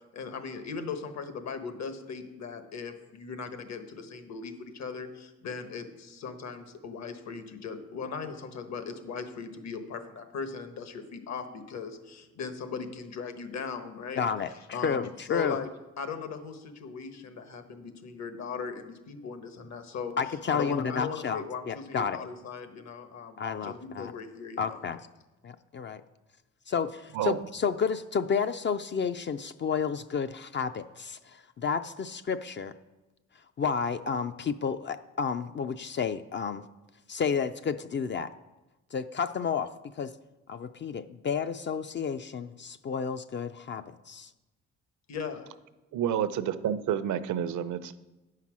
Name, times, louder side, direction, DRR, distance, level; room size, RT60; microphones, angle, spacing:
voice 1, 0.1-14.2 14.7-15.7 16.0-20.2 20.5-24.8 45.1-45.4, left 5 dB, 60° left, 9 dB, 1.2 m, -38 dB
voice 2, 14.1-15.6 20.2-22.2 23.4-24.1 24.6-25.0 25.4-26.0 26.7-32.7 33.3-36.6 37.1-38.3 38.9-40.1 40.5-44.3, left 6 dB, 40° left, 10 dB, 0.4 m, -31 dB
voice 3, 27.1-27.5 45.9-48.0, right 9 dB, 75° right, 13 dB, 0.7 m, -29 dB
9.3 x 5.7 x 6.1 m, 1.0 s
cardioid pair, 90°, 30 cm